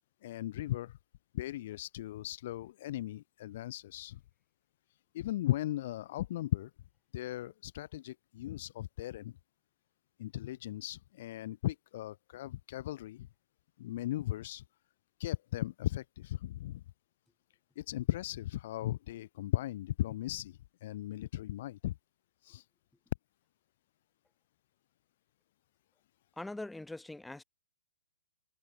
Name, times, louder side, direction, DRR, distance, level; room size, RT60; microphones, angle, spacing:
voice 1, 0.2-0.9 1.3-4.2 5.1-6.7 7.1-9.3 10.2-13.3 13.8-14.6 15.2-16.8 17.8-22.0 22.4-22.6, left 14 dB, 45° left, 2.6 m, -37 dB
voice 2, 26.4-27.4, left 2 dB, 5° left, 6.3 m, -42 dB
figure-of-eight pair, 115°, 0 cm